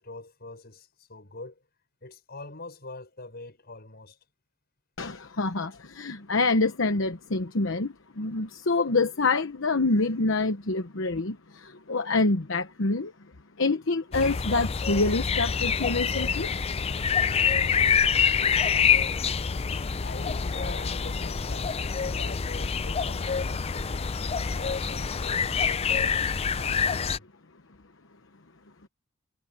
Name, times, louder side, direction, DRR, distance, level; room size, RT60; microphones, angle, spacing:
voice 1, 0.0-1.6 2.0-4.2 20.0-21.9 22.1-24.1 24.5-26.2 26.5-27.3, left 2 dB, 55° left, 6.7 m, -43 dB
voice 2, 5.0-5.7 6.0-7.9 8.2-11.3 11.9-13.1 13.6-16.5, left 3 dB, 70° left, 1.1 m, -26 dB
sound 1, 14.1-27.2, left 6 dB, 30° left, 0.5 m, -26 dB
head